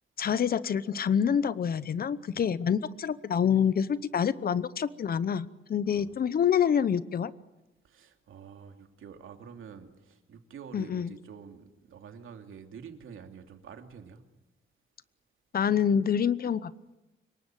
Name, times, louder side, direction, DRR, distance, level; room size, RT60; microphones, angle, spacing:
voice 1, 0.2-7.3 10.7-11.1 15.5-16.9, left 8 dB, 45° left, 16 dB, 0.9 m, -27 dB
voice 2, 7.8-14.2, right 7 dB, 85° right, 5 dB, 2.8 m, -48 dB
25.5 x 22.5 x 9.1 m, 0.98 s
wide cardioid pair, 175°, 20 cm